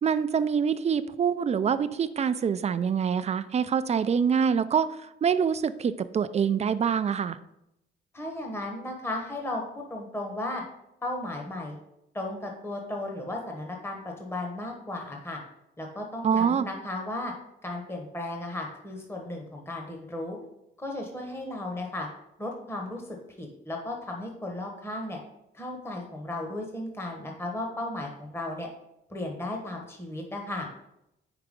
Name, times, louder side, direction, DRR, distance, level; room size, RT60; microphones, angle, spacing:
voice 1, 0.0-7.4 16.2-16.7, right 7 dB, 35° right, 12 dB, 0.4 m, -25 dB
voice 2, 8.1-10.6 11.0-11.8 12.1-15.4 15.8-17.3 17.6-20.4 20.8-22.1 22.4-23.0 23.4-25.2 25.5-28.7 29.1-30.7, left 1 dB, 10° left, 1 dB, 1.1 m, -35 dB
4.9 x 4.6 x 5.2 m, 0.83 s
cardioid pair, 90°, 20 cm